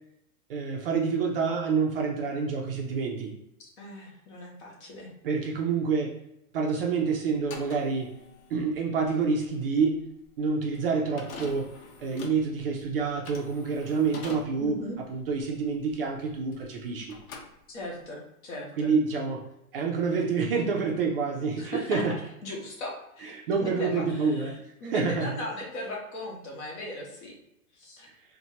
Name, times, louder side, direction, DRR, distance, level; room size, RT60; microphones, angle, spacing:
voice 1, 0.5-3.3 5.2-6.1 6.5-8.1 8.5-10.0 10.4-11.7 12.0-17.1 18.8-19.4 19.7-22.2 23.2-24.6 24.8-25.3, right 5 dB, 40° right, 0 dB, 0.4 m, -27 dB
voice 2, 3.8-5.1 14.6-15.0 17.7-18.9 21.5-22.0 22.4-27.3 27.7-28.1, left 1 dB, 45° left, -2 dB, 1.1 m, -38 dB
sound 1, 7.3-16.8 17.1-18.1, left 3 dB, 65° left, 0.8 m, -45 dB
4.1 x 2.1 x 2.8 m, 0.81 s
hypercardioid pair, 150°, 45 cm